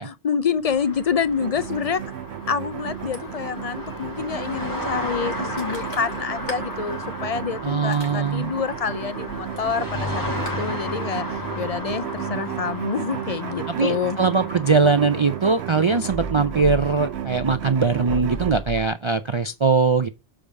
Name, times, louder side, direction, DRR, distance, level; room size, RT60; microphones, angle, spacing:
voice 1, 0.0-2.0 2.5-11.3 11.6-14.2, left 6 dB, 45° left, 0.5 m, -27 dB
Ocean, 0.5-10.6, left 1 dB, 85° left, 2.8 m, -44 dB
sound 1, 0.7-18.9, left 1 dB, 15° left, 1.9 m, -34 dB
sound 2, 1.4-18.6, right 11 dB, 70° right, 0.8 m, -34 dB
voice 2, 7.6-8.5 13.7-20.1, right 4 dB, 50° right, 0.3 m, -21 dB
6.9 x 5.0 x 6.3 m
omnidirectional pair, 1.2 m